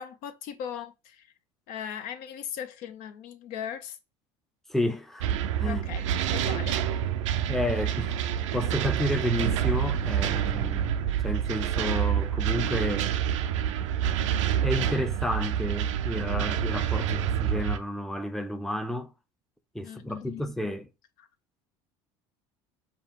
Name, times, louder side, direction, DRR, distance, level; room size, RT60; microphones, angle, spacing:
voice 1, 0.0-1.3 1.7-4.0 5.6-6.8 19.8-20.5 21.2-21.3, left 8 dB, 65° left, 0.6 m, -38 dB
voice 2, 4.7-5.3 5.6-5.8 7.5-13.1 14.6-19.1 19.7-20.9, left 1 dB, ahead, 0.6 m, -31 dB
sound 1, 5.2-17.8, right 9 dB, 90° right, 0.5 m, -27 dB
5.0 x 2.3 x 3.6 m
supercardioid pair, 90°, 15 cm